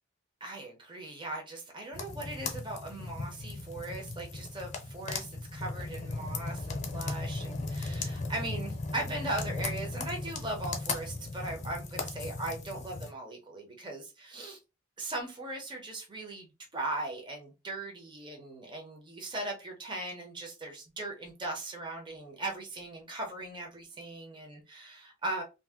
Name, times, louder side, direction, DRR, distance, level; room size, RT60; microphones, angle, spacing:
voice 1, 0.4-14.6 15.0-25.4, right 2 dB, 25° right, 0.7 m, -39 dB
sound 1, 1.9-13.1, left 3 dB, 35° left, 0.5 m, -37 dB
2.6 x 2.1 x 3.4 m
head